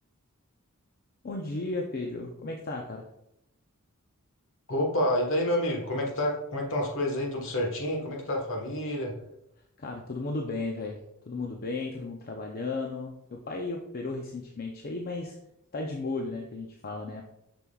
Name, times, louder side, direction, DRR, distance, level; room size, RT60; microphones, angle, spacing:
voice 1, 1.2-3.0 9.8-15.4 15.7-17.2, left 3 dB, 45° left, 1 dB, 0.6 m, -34 dB
voice 2, 4.7-9.1, left 1 dB, 60° left, 0 dB, 1.4 m, -28 dB
6.6 x 6.1 x 2.3 m, 0.83 s
head